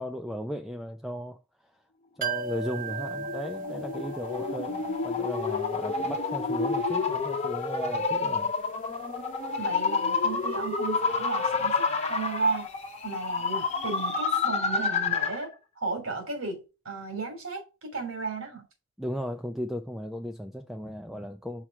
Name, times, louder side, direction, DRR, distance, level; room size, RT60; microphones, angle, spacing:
voice 1, 0.0-1.4 2.2-8.5 19.0-21.7, equal, ahead, 0.4 m, -36 dB
sound 1, 2.2-13.8 14.1-14.2, right 3 dB, 40° right, 0.6 m, -40 dB
sound 2, 2.7-15.5, left 4 dB, 30° left, 1.1 m, -29 dB
voice 2, 9.6-12.7 13.0-16.6 16.8-18.6, right 4 dB, 70° right, 3.1 m, -34 dB
5.8 x 4.6 x 4.8 m
head